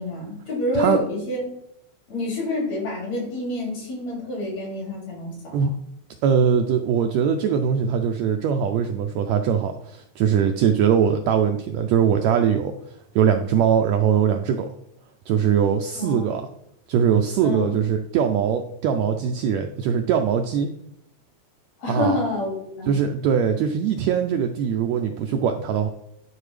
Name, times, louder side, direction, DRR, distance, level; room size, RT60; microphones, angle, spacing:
voice 1, 0.0-1.4 2.1-5.7 16.0-16.3 17.4-17.7 21.8-23.0, left 2 dB, 60° left, -2 dB, 3.7 m, -28 dB
voice 2, 6.2-12.7 13.1-14.7 15.3-16.4 16.9-20.7 21.9-22.2 22.9-25.9, right 7 dB, 80° right, 5 dB, 1.6 m, -21 dB
10.5 x 4.5 x 3.3 m, 0.75 s
omnidirectional pair, 3.6 m